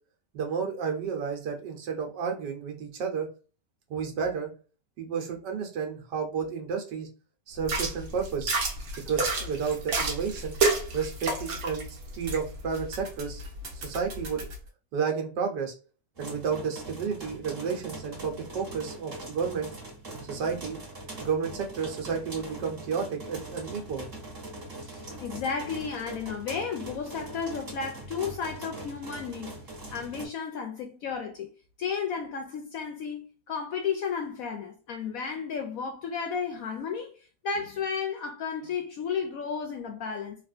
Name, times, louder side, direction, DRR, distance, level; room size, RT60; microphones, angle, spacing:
voice 1, 0.3-3.3 3.9-4.5 5.0-7.1 7.5-8.5 9.1-10.6 10.9-13.4 13.7-14.5 14.9-15.7 16.2-19.7 20.2-20.8 21.2-24.0, right 6 dB, 75° right, 1.5 m, -31 dB
sound 1, 7.6-14.6, right 3 dB, 60° right, 1.2 m, -31 dB
sound 2, 16.1-30.3, right 1 dB, 35° right, 1.4 m, -42 dB
voice 2, 24.8-29.5 29.9-31.5 31.8-37.1 37.4-40.4, left 6 dB, 70° left, 0.8 m, -33 dB
3.4 x 2.4 x 2.4 m
omnidirectional pair, 1.9 m